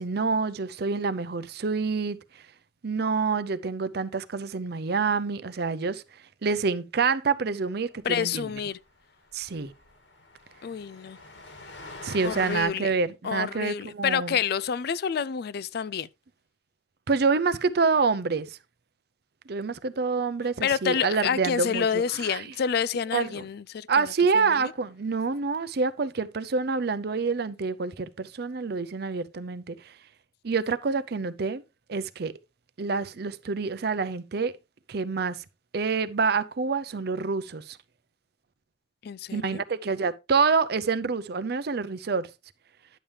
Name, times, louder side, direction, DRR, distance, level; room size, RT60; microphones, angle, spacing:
voice 1, 0.0-2.4 2.8-6.0 6.4-8.4 9.3-9.7 12.0-14.4 17.1-18.6 19.5-22.0 22.3-22.4 23.1-23.4 23.9-29.9 30.4-31.6 31.9-32.3 32.8-34.5 34.9-35.4 35.7-37.8 39.3-42.3, right 4 dB, 60° right, 0.6 m, -27 dB
voice 2, 8.0-8.8 10.6-11.2 12.2-12.9 13.2-16.1 20.6-24.7 39.0-39.6, left 7 dB, 60° left, 0.4 m, -29 dB
Train, 8.1-8.2 8.4-8.6 8.8-8.9 9.3-12.6, left 2 dB, 85° left, 2.3 m, -44 dB
10.0 x 7.2 x 3.3 m
head